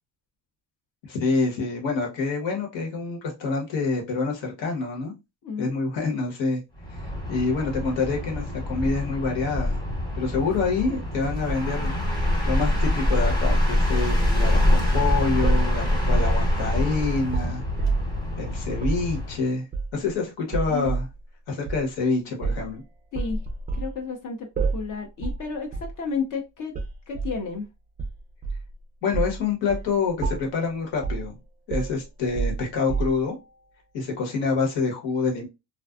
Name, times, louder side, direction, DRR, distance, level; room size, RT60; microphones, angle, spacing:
voice 1, 1.0-5.1 5.6-6.6 7.3-9.8 10.2-11.9 12.4-17.6 18.4-19.6 19.9-21.0 21.5-22.8 29.0-31.3 31.7-33.4 33.9-35.5, left 4 dB, 80° left, 1.2 m, -27 dB
voice 2, 5.4-5.7 20.7-20.9 23.1-23.4 23.8-26.7 27.1-27.7, left 5 dB, 45° left, 0.6 m, -32 dB
sound 1, 6.7-19.4, left 1 dB, 10° left, 0.9 m, -25 dB
sound 2, 15.4-18.2 18.7-19.1 19.7-20.1 20.5-21.1 21.7-21.8 22.4-22.7 23.1-23.9 24.6-24.9 25.2-25.4 25.7-26.0 26.7-27.4 28.0-28.7 29.1-29.4 29.7-29.9 30.2-30.6 31.0-31.3 31.7-33.4, right 4 dB, 20° right, 0.3 m, -29 dB
2.5 x 2.2 x 2.3 m
cardioid pair, 115°, 43 cm